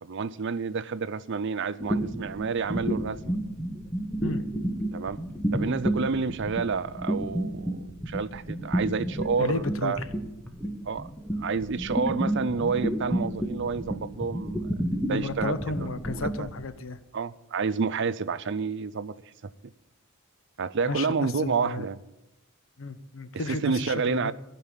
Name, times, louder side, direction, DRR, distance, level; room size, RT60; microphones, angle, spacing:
voice 1, 0.0-3.4 4.9-5.2 5.5-10.0 10.9-11.1 11.4-14.7 15.1-16.5 17.1-19.2 19.4-19.5 20.6-22.0 23.5-24.3, right 5 dB, 60° right, 0.5 m, -29 dB
sound 1, 1.8-16.6, right 1 dB, 5° left, 1.5 m, -30 dB
voice 2, 9.4-10.0 15.0-17.0 20.8-21.9 22.8-24.3, left 3 dB, 65° left, 0.9 m, -33 dB
16.5 x 5.4 x 9.7 m
head